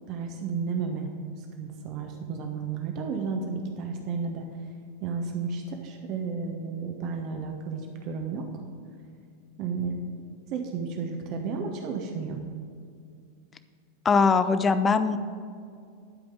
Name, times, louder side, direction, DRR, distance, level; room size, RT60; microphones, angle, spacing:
voice 1, 0.1-1.1 1.4-4.5 5.0-8.5 9.6-10.0 10.5-12.4, right 5 dB, 40° right, 3 dB, 1.1 m, -32 dB
voice 2, 14.0-15.2, left 5 dB, 20° left, 11 dB, 0.6 m, -21 dB
12.0 x 5.2 x 7.7 m, 2.3 s
figure-of-eight pair, 90°, 0 cm